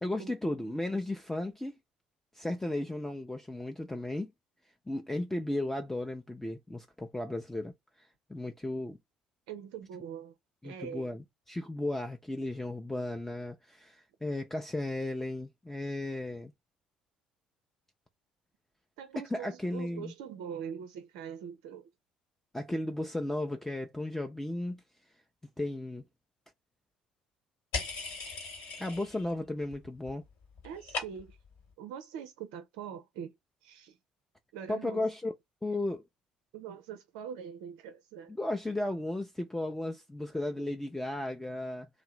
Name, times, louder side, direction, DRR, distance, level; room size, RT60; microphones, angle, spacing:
voice 1, 0.0-1.7 2.3-4.3 4.9-7.7 8.0-9.0 10.6-16.5 19.3-20.1 22.5-24.8 25.6-26.0 28.8-30.2 34.7-35.3 35.6-36.0 38.3-41.9, left 1 dB, 10° left, 0.5 m, -35 dB
voice 2, 9.5-10.3 10.6-11.1 19.0-21.9 30.6-31.4 31.8-33.4 33.6-34.0 34.5-35.1 35.7-35.8 36.5-38.3, right 8 dB, 60° right, 0.4 m, -43 dB
sound 1, 27.7-29.3 29.6-30.2 30.4-31.5, left 4 dB, 60° left, 1.7 m, -38 dB
2.7 x 2.6 x 3.0 m
figure-of-eight pair, 50°, 4 cm